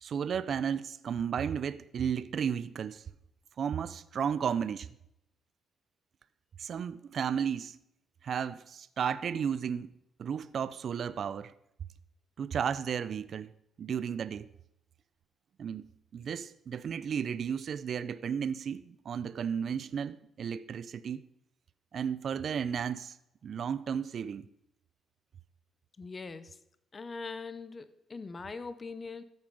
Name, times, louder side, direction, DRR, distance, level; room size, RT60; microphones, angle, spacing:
voice 1, 0.0-3.0 3.6-4.9 6.6-7.8 8.2-9.9 10.2-11.5 12.4-13.5 13.8-14.5 15.6-15.9 16.1-21.2 21.9-23.2 23.4-24.5, right 7 dB, 55° right, 0.6 m, -33 dB
voice 2, 26.0-26.6 26.9-29.2, left 4 dB, 30° left, 0.9 m, -41 dB
14.0 x 8.1 x 5.4 m
cardioid pair, 90°, 0 cm